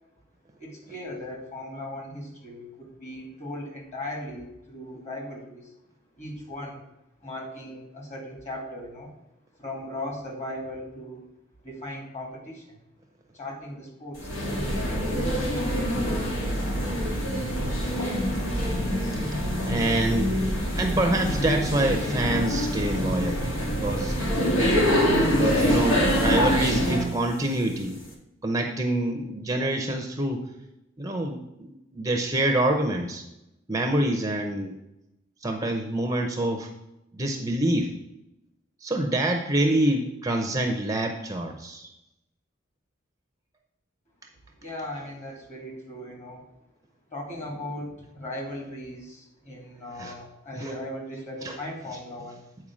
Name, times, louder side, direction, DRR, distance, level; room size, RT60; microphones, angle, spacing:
voice 1, 0.6-5.7 6.2-6.8 7.2-9.1 9.6-11.3 11.6-12.8 13.3-16.3 44.6-46.4 47.1-52.4, left 1 dB, 35° left, 0 dB, 2.5 m, -38 dB
sound 1, 14.2-27.1, equal, 80° left, 2.1 m, -25 dB
voice 2, 19.3-20.3 20.8-23.4 23.8-24.2 25.0-28.0 28.4-30.5 31.0-33.2 33.7-34.7 35.4-36.7 37.2-37.9 38.8-41.9 50.0-50.1 50.6-50.7 51.4-51.6, right 1 dB, 15° right, 4 dB, 0.7 m, -26 dB
8.7 x 4.6 x 6.2 m, 0.88 s
head